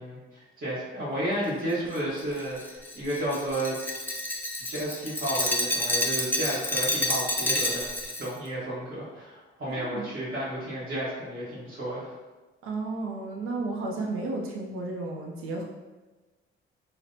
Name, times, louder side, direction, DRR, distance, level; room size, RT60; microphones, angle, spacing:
voice 1, 0.0-3.8 4.7-7.9 8.2-12.1, right 1 dB, 45° right, -9 dB, 1.3 m, -32 dB
Glass, 1.9-8.3, left 1 dB, 10° left, 0.5 m, -29 dB
voice 2, 9.7-10.1 12.6-15.6, right 3 dB, 85° right, 0 dB, 0.6 m, -33 dB
5.7 x 2.1 x 2.6 m, 1.2 s
cardioid pair, 110°, 21 cm